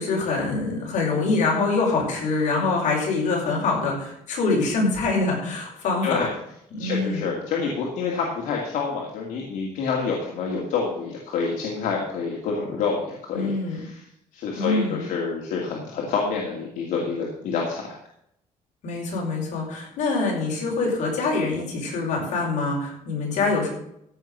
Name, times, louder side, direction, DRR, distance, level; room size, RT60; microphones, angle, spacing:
voice 1, 0.0-6.3 6.7-7.2 13.3-13.8 14.6-15.1 18.8-23.7, left 3 dB, 65° left, -2 dB, 5.8 m, -24 dB
voice 2, 6.8-14.0 14.3-18.0, left 5 dB, 85° left, -1 dB, 2.5 m, -28 dB
15.0 x 6.0 x 6.8 m, 0.75 s
cardioid pair, 150°, 13 cm